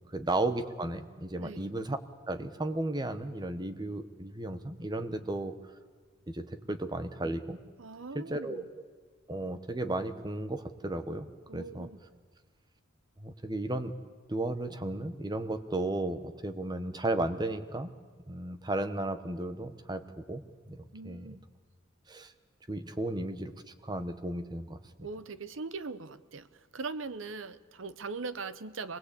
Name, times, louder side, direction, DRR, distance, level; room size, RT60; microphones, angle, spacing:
voice 1, 0.1-2.0 2.3-5.5 6.3-7.6 8.1-8.6 9.3-11.9 13.2-13.9 14.3-17.9 18.3-21.3 22.1-22.3 22.7-24.8, right 2 dB, 20° right, 10 dB, 1.1 m, -34 dB
voice 2, 1.4-1.7 7.8-8.7 11.5-12.0 20.9-21.4 25.0-29.0, right 4 dB, 65° right, 14 dB, 0.9 m, -41 dB
24.0 x 20.0 x 8.4 m, 1.5 s
head